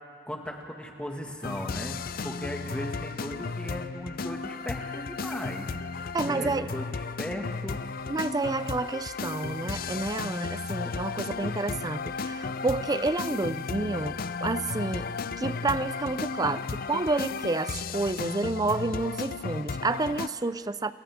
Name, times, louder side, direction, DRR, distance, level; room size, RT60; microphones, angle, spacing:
voice 1, 0.3-2.0 2.2-5.8 6.3-7.8, equal, 5° left, 0 dB, 1.9 m, -37 dB
sound 1, 1.4-20.3, left 4 dB, 50° left, 0.5 m, -34 dB
voice 2, 6.1-6.7 8.1-20.9, right 3 dB, 20° right, 14 dB, 0.4 m, -30 dB
29.5 x 28.5 x 3.7 m, 2.3 s
head